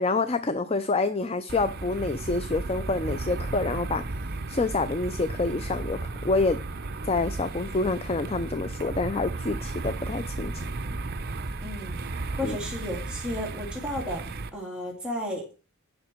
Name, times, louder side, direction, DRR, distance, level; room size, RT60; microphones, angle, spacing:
voice 1, 0.0-4.0 4.5-6.6 7.0-10.6 12.4-12.6, left 3 dB, 25° left, 12 dB, 0.5 m, -27 dB
sound 1, 1.5-14.5, right 3 dB, 45° right, 0.8 m, -34 dB
voice 2, 11.6-12.0 12.3-15.4, left 1 dB, 5° right, -4 dB, 3.0 m, -33 dB
11.5 x 7.5 x 4.6 m, 0.34 s
head